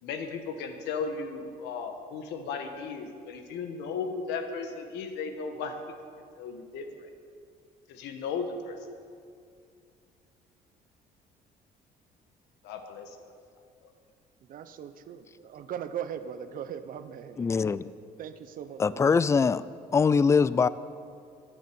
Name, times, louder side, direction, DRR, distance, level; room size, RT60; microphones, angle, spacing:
voice 1, 0.0-5.8 6.4-7.1 7.9-8.9 12.6-13.2 13.8-13.9, left 5 dB, 85° left, 1.4 m, -36 dB
voice 2, 14.5-17.5 17.7-19.1, right 8 dB, 55° right, 0.8 m, -39 dB
voice 3, 17.4-17.9 18.8-19.6 19.9-20.7, left 5 dB, 15° left, 0.3 m, -22 dB
10.5 x 9.2 x 7.8 m
cardioid pair, 110°, 17 cm